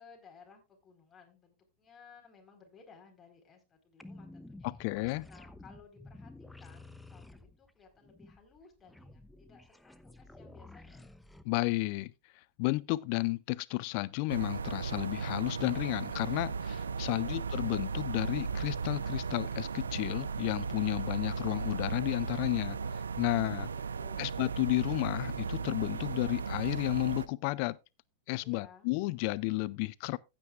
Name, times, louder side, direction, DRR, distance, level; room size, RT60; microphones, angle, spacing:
voice 1, 0.0-4.9 5.3-6.3 6.6-11.1 17.0-17.5 23.3-24.4 28.4-28.9, left 5 dB, 20° left, 4.4 m, -58 dB
sound 1, 4.0-11.4, left 2 dB, 5° left, 0.9 m, -52 dB
voice 2, 4.6-5.3 11.4-12.1 12.6-23.7 24.2-27.8 28.3-30.2, left 22 dB, 50° left, 0.4 m, -32 dB
sound 2, 14.3-27.3, right 5 dB, 85° right, 0.5 m, -36 dB
15.0 x 8.8 x 2.4 m
hypercardioid pair, 95°, 0 cm